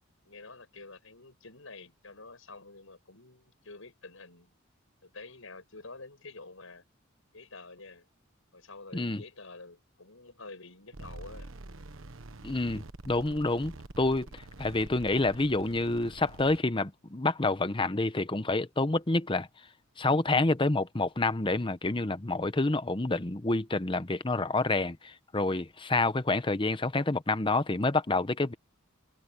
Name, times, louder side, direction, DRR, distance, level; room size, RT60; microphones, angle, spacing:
voice 1, 0.2-4.5 5.0-6.8 7.3-8.1 8.5-11.5, left 3 dB, 75° left, 5.9 m, -48 dB
sound 1, 10.9-16.6, right 2 dB, 75° right, 1.2 m, -46 dB
voice 2, 12.4-19.5 20.0-28.5, left 2 dB, 25° left, 0.9 m, -28 dB
head